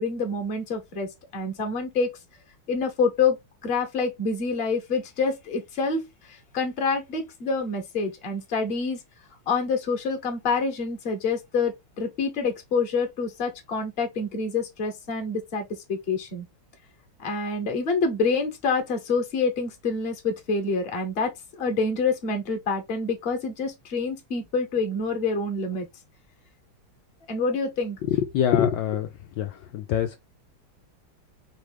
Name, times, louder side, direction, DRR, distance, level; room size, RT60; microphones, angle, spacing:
voice 1, 0.0-2.1 2.7-3.4 3.6-6.1 6.5-9.0 9.5-16.4 17.2-25.9 27.3-28.0, left 4 dB, 35° left, 1.2 m, -27 dB
voice 2, 28.0-29.1 29.4-30.2, left 9 dB, 75° left, 1.2 m, -24 dB
4.8 x 3.3 x 3.4 m
omnidirectional pair, 2.3 m